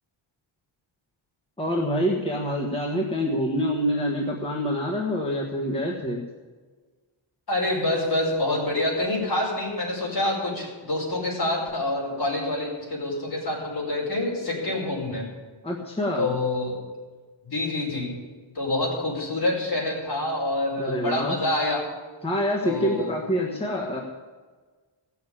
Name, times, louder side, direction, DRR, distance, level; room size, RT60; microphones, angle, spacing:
voice 1, 1.6-6.2 15.6-16.3 20.8-21.4 22.2-24.0, equal, 10° left, -3 dB, 1.5 m, -26 dB
voice 2, 7.5-15.3 16.2-16.8 17.4-18.2 18.5-21.9 22.6-23.1, left 2 dB, 50° left, -3 dB, 5.4 m, -27 dB
16.5 x 7.0 x 8.6 m, 1.4 s
wide cardioid pair, 165°, 49 cm